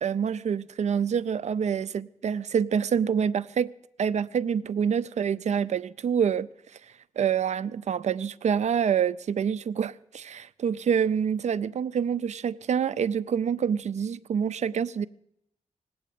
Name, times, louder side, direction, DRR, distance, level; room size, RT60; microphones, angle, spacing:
voice 1, 0.0-3.7 4.0-6.5 7.2-15.1, right 7 dB, 70° right, 0.5 m, -26 dB
18.5 x 8.6 x 8.2 m
wide cardioid pair, 110°, 12 cm